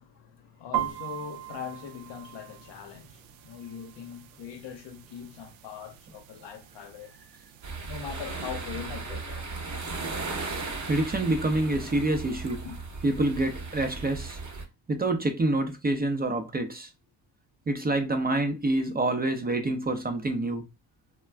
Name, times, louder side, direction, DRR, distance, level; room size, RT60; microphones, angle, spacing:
voice 1, 0.0-7.1 7.9-9.6 12.6-12.7, left 8 dB, 60° left, 0.8 m, -41 dB
sound 1, 0.7-8.5, right 14 dB, 70° right, 0.5 m, -40 dB
sound 2, 7.6-14.6, right 3 dB, 35° right, 0.9 m, -36 dB
voice 2, 10.4-12.6 13.0-14.4 14.9-16.9 17.7-20.6, right 2 dB, 20° right, 0.5 m, -27 dB
2.3 x 2.2 x 3.3 m
supercardioid pair, 65°, 49 cm